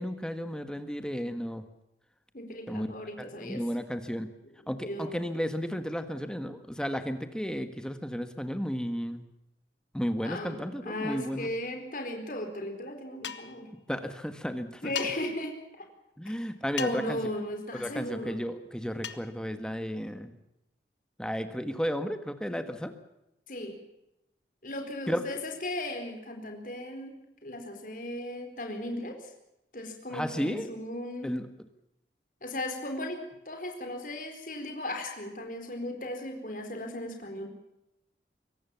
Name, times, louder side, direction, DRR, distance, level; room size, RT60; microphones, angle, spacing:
voice 1, 0.0-1.6 2.7-2.9 3.2-4.3 4.7-9.2 9.9-11.5 13.9-15.1 16.2-17.2 17.7-20.3 21.2-22.9 25.1-25.2 30.1-30.7 31.2-31.5, equal, 5° left, 9 dB, 1.5 m, -33 dB
voice 2, 2.3-3.6 4.8-5.2 10.2-13.7 14.8-15.9 16.8-18.4 23.5-23.8 24.6-29.3 29.7-31.3 32.4-37.5, left 1 dB, 45° left, 4 dB, 4.3 m, -36 dB
sound 1, 13.2-13.6 15.0-15.1 16.8-17.1 19.0-19.3, left 8 dB, 90° left, 1.7 m, -36 dB
24.0 x 18.5 x 7.1 m, 0.88 s
head